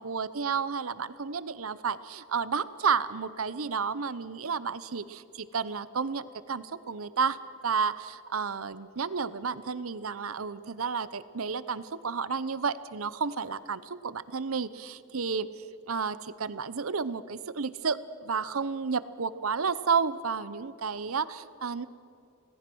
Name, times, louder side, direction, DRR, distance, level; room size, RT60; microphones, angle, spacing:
voice 1, 0.0-7.4 7.6-21.9, right 5 dB, 90° right, 15 dB, 0.9 m, -31 dB
26.0 x 18.0 x 6.3 m, 2.5 s
head